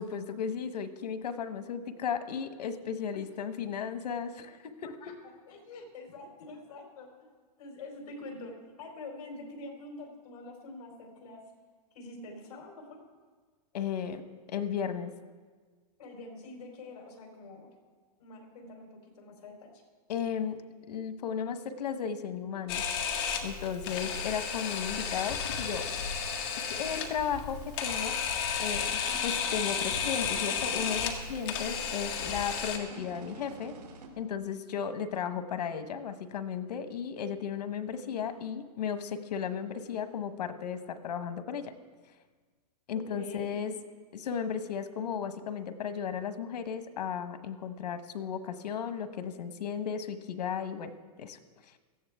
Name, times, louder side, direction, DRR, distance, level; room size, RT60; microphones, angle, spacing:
voice 1, 0.0-5.1 13.7-15.1 20.1-22.8 23.4-26.3 26.5-28.2 28.6-33.8 34.2-41.7 42.9-43.7 44.1-50.9 51.2-51.4, left 7 dB, 90° left, 10 dB, 1.2 m, -35 dB
voice 2, 5.5-7.3 7.6-11.4 11.9-13.0 16.0-17.8 18.2-19.8 43.0-43.7, left 2 dB, 60° left, 0 dB, 4.4 m, -45 dB
Camera, 22.7-32.8, left 7 dB, 35° left, 1.6 m, -33 dB
sound 1, 27.5-34.1, right 3 dB, 80° right, 2.7 m, -49 dB
17.5 x 14.5 x 3.6 m, 1.5 s
supercardioid pair, 170°, 20 cm